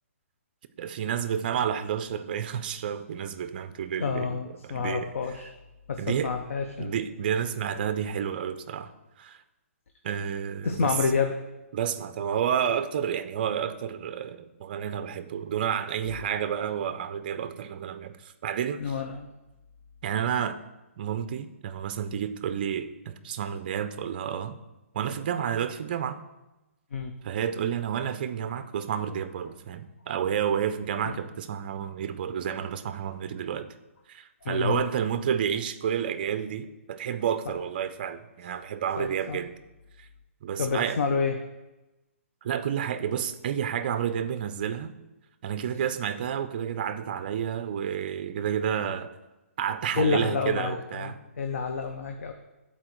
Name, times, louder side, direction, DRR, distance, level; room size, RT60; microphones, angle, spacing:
voice 1, 0.8-5.1 6.0-6.3 6.8-8.9 9.2-9.4 10.0-10.9 11.7-18.8 20.0-20.6 21.0-24.6 24.9-26.2 27.2-33.7 34.1-39.5 40.0-40.1 40.4-41.0 42.4-44.9 45.4-49.1 49.6-51.2, right 8 dB, 40° right, 11 dB, 0.4 m, -30 dB
voice 2, 4.0-5.5 5.9-6.9 10.6-11.3 18.8-19.3 26.9-27.1 31.0-31.2 34.4-34.8 38.5-38.6 39.0-39.4 40.6-41.3 50.0-52.3, left 5 dB, 65° left, 4 dB, 0.6 m, -29 dB
9.9 x 4.1 x 3.1 m, 1.0 s
hypercardioid pair, 160°, 8 cm